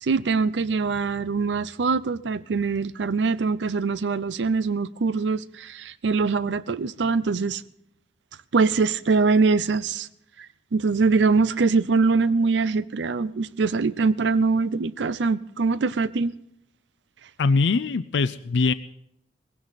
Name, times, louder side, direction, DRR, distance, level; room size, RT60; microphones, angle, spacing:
voice 1, 0.0-7.6 8.5-10.1 10.4-16.3, right 4 dB, 85° right, 0.5 m, -23 dB
voice 2, 17.4-18.7, left 4 dB, 85° left, 0.5 m, -22 dB
20.0 x 16.0 x 4.1 m
head